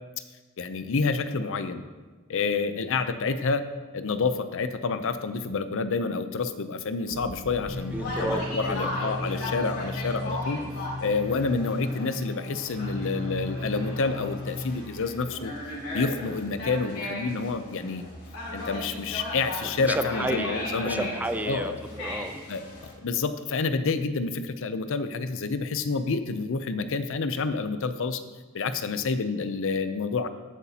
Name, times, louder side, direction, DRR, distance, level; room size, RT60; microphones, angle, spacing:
voice 1, 0.6-1.8 2.3-3.7 3.9-10.6 11.0-15.5 15.9-18.0 18.5-21.1 21.5-21.8 22.5-28.2 28.5-30.3, left 4 dB, 65° left, 11 dB, 0.6 m, -28 dB
sound 1, 7.1-9.7, right 1 dB, 65° right, 1.2 m, -46 dB
sound 2, 7.7-14.9, left 2 dB, 35° right, 3.1 m, -35 dB
Conversation, 7.9-22.9, left 1 dB, 85° left, 3.1 m, -37 dB
voice 2, 7.9-9.2 19.8-22.4, right 1 dB, 10° right, 9 dB, 0.4 m, -32 dB
14.0 x 8.2 x 2.8 m, 1.3 s
head